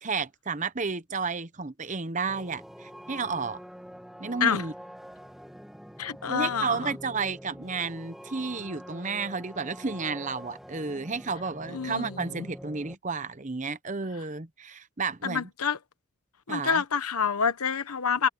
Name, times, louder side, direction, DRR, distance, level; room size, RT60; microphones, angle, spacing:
voice 1, 0.0-3.6 4.2-4.7 6.3-15.5 16.5-16.8, right 4 dB, 35° right, 0.9 m, -32 dB
sound 1, 2.3-12.9, equal, ahead, 2.5 m, -45 dB
voice 2, 6.0-7.0 11.7-12.5 15.2-15.8 16.5-18.3, left 6 dB, 85° left, 1.1 m, -27 dB
head